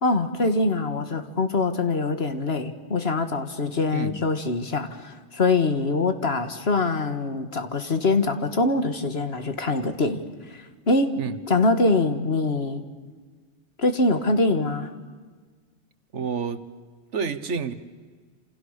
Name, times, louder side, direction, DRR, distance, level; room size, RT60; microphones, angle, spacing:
voice 1, 0.0-10.2 10.5-11.2 11.5-12.8 13.8-14.9, left 3 dB, 60° left, 8 dB, 1.9 m, -24 dB
voice 2, 16.1-16.6 17.1-17.7, right 6 dB, 75° right, 12 dB, 1.6 m, -29 dB
28.0 x 28.0 x 6.7 m, 1.5 s
omnidirectional pair, 1.2 m